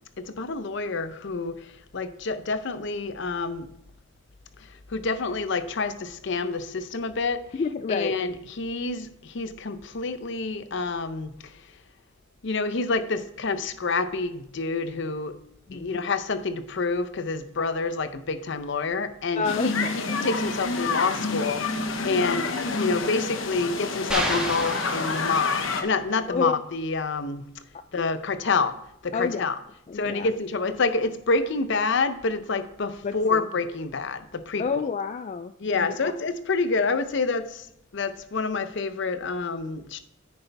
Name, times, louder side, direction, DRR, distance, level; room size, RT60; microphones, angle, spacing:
voice 1, 0.2-1.6 1.9-3.7 4.9-7.4 7.9-11.3 12.4-15.4 15.7-21.7 22.0-27.5 27.9-28.8 29.0-29.6 29.9-34.9 35.6-37.7 37.9-40.0, left 4 dB, 65° left, 0.7 m, -28 dB
voice 2, 7.6-8.2 15.7-16.0 17.6-17.7 19.4-20.3 22.0-22.3 26.3-26.6 28.0-28.1 29.1-29.5 29.9-30.3 33.0-33.4 34.6-36.1, left 5 dB, 35° left, 0.3 m, -30 dB
sound 1, 19.4-25.8, left 4 dB, 85° left, 1.0 m, -28 dB
sound 2, 24.1-25.8, right 1 dB, 5° right, 1.5 m, -31 dB
9.7 x 8.0 x 3.4 m
head